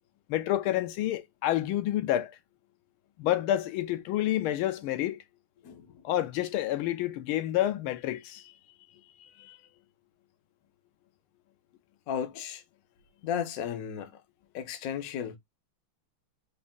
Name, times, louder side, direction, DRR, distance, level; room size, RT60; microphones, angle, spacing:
voice 1, 0.3-2.3 3.2-5.2 6.0-8.4 9.2-9.6, left 13 dB, 80° left, 1.5 m, -29 dB
voice 2, 5.6-6.0 12.1-12.6 13.2-14.2 14.5-15.4, left 8 dB, 60° left, 0.9 m, -34 dB
4.0 x 2.6 x 3.5 m
omnidirectional pair, 2.3 m